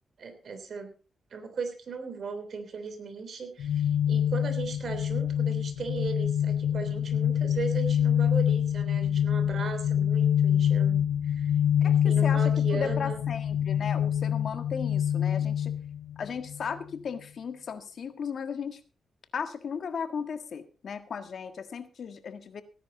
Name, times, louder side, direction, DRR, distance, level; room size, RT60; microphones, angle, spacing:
voice 1, 0.2-0.9 1.3-11.5 11.8-13.2, right 5 dB, 60° right, 7 dB, 3.3 m, -37 dB
sound 1, 3.6-16.7, left 9 dB, 85° left, 0.7 m, -26 dB
voice 2, 11.8-15.7 16.2-18.8 19.3-22.6, left 6 dB, 65° left, 9 dB, 1.6 m, -36 dB
17.0 x 10.0 x 4.0 m, 0.36 s
cardioid pair, 90°, 0 cm